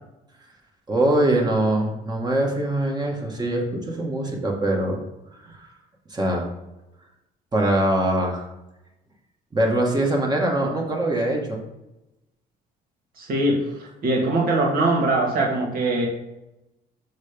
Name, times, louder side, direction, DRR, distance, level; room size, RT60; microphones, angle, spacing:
voice 1, 0.9-5.0 5.3-5.7 6.1-6.5 7.5-8.5 9.5-11.6, right 1 dB, 25° right, 0 dB, 1.8 m, -23 dB
voice 2, 13.2-16.1, right 2 dB, 60° right, -1 dB, 2.3 m, -22 dB
6.6 x 4.0 x 5.2 m, 0.95 s
cardioid pair, 110°, 17 cm